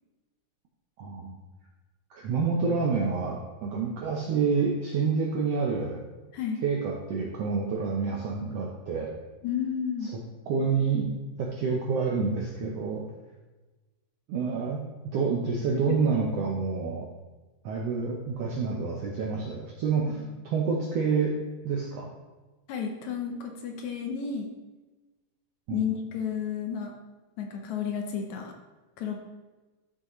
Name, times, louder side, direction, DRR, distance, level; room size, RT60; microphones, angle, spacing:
voice 1, 1.0-1.4 2.1-6.0 6.6-9.1 10.5-11.1 11.4-13.0 14.3-17.1 17.6-21.3 21.6-22.1 25.7-25.8, right 5 dB, 75° right, -1 dB, 1.5 m, -28 dB
voice 2, 9.4-10.1 15.7-16.1 20.1-20.2 22.7-24.5 25.7-26.9 27.4-28.5 29.0-29.2, left 7 dB, 70° left, 3 dB, 2.0 m, -32 dB
12.0 x 6.2 x 3.1 m, 1.2 s
omnidirectional pair, 3.8 m